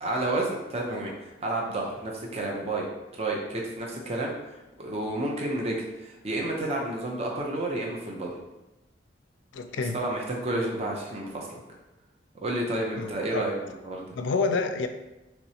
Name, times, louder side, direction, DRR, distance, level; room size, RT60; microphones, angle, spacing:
voice 1, 0.0-2.9 3.1-4.3 4.8-8.3 9.9-11.6 12.4-14.2, right 1 dB, 35° right, -1 dB, 0.5 m, -30 dB
voice 2, 9.5-10.0 13.0-13.4 14.2-14.9, left 4 dB, 80° left, 8 dB, 0.3 m, -28 dB
3.1 x 2.9 x 2.7 m, 1.0 s
head